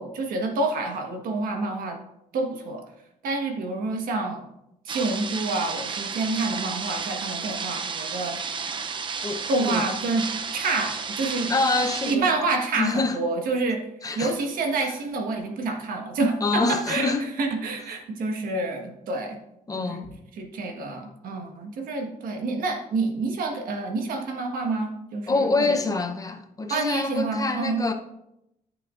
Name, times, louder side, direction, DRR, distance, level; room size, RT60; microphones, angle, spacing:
voice 1, 0.0-2.0 2.3-2.8 3.2-4.4 4.8-8.4 9.5-10.2 10.5-11.5 12.1-13.8 14.1-19.4 19.7-20.0 20.3-25.8 26.7-27.8, right 3 dB, 75° right, 1.4 m, -28 dB
sound 1, 4.9-12.2, right 5 dB, 35° right, 0.6 m, -32 dB
voice 2, 9.2-9.8 11.5-12.2 12.8-13.2 14.0-14.3 16.4-17.3 19.7-20.1 25.3-27.9, left 3 dB, 25° left, 0.7 m, -26 dB
13.5 x 6.8 x 2.5 m
cardioid pair, 125°, 14 cm